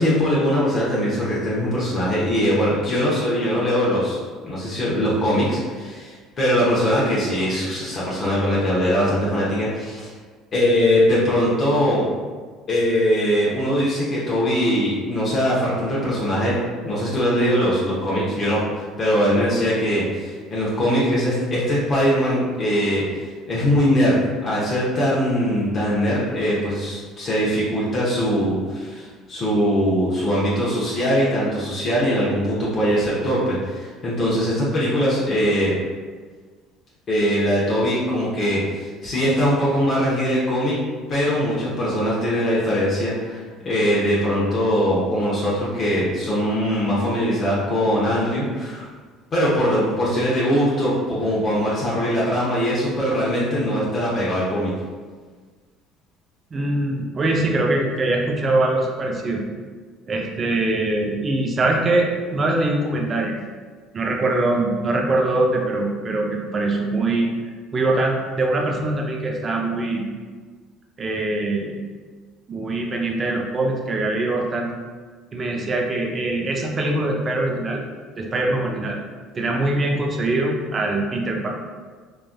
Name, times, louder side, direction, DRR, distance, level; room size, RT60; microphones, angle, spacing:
voice 1, 0.0-4.2 4.4-10.1 10.5-12.0 12.7-16.6 16.8-24.1 24.4-35.7 37.1-40.8 41.1-48.9 49.3-54.7, equal, 40° left, -7 dB, 0.8 m, -21 dB
voice 2, 56.5-59.4 60.1-63.3 63.9-67.3 67.7-70.0 71.0-71.8 72.5-74.7 75.3-77.9 78.2-79.0 79.3-81.5, right 2 dB, 35° right, 0 dB, 0.5 m, -23 dB
3.2 x 2.4 x 2.2 m, 1.5 s
supercardioid pair, 90°, 0 cm